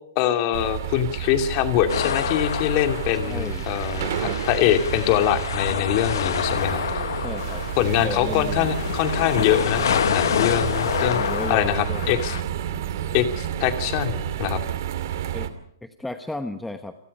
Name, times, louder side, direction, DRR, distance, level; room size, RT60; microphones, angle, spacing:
voice 1, 0.2-7.0 7.8-11.2 11.5-12.4 13.1-14.6, left 11 dB, 35° left, 6 dB, 2.8 m, -23 dB
sound 1, 0.5-15.5, right 10 dB, 55° right, 2.5 m, -30 dB
sound 2, 1.9-12.4, left 9 dB, 70° left, 0.9 m, -28 dB
voice 2, 3.2-3.7 4.2-4.4 7.2-7.6 8.0-8.8 11.0-12.1 15.3-15.5 15.8-17.0, left 2 dB, 5° left, 8 dB, 1.0 m, -34 dB
sound 3, 7.4-13.0, right 7 dB, 35° right, 5.1 m, -45 dB
28.5 x 19.0 x 5.5 m, 0.71 s
hypercardioid pair, 150°, 2 cm